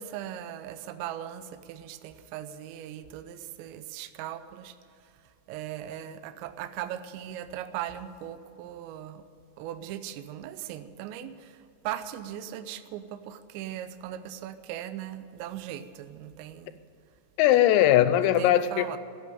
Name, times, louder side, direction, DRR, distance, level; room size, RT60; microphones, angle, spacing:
voice 1, 0.0-9.2 9.6-16.8 18.2-19.0, right 11 dB, 85° right, 10 dB, 2.6 m, -39 dB
voice 2, 17.4-19.0, left 12 dB, 85° left, 12 dB, 3.4 m, -20 dB
14.5 x 8.9 x 9.2 m, 2.5 s
omnidirectional pair, 6.0 m